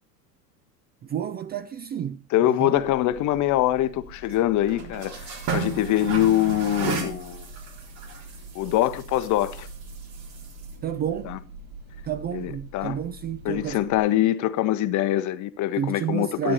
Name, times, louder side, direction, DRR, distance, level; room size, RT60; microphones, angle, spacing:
voice 1, 1.0-2.8 10.8-11.4 12.0-13.8 15.8-16.5, right 9 dB, 20° right, 0.4 m, -30 dB
voice 2, 2.3-7.5 8.5-9.7 11.2-11.4 12.3-13.0 13.4-16.5, left 13 dB, 35° left, 0.9 m, -24 dB
sound 1, 2.8-14.0, right 4 dB, 55° right, 3.6 m, -36 dB
12.0 x 9.2 x 4.1 m
figure-of-eight pair, 80°, 48 cm